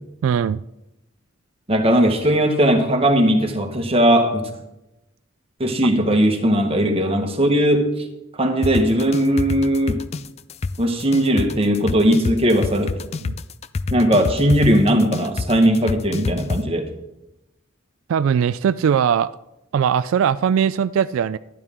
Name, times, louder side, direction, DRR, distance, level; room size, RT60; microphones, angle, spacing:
voice 1, 0.2-0.6 13.2-13.3 18.1-19.3 19.7-21.4, right 8 dB, 85° right, 15 dB, 0.3 m, -19 dB
voice 2, 1.7-4.4 5.6-8.1 8.3-10.0 10.8-12.9 13.9-16.9, equal, 30° right, 4 dB, 1.3 m, -18 dB
sound 1, 8.6-16.6, left 3 dB, 30° left, 0.4 m, -26 dB
12.5 x 10.5 x 3.7 m, 0.90 s
head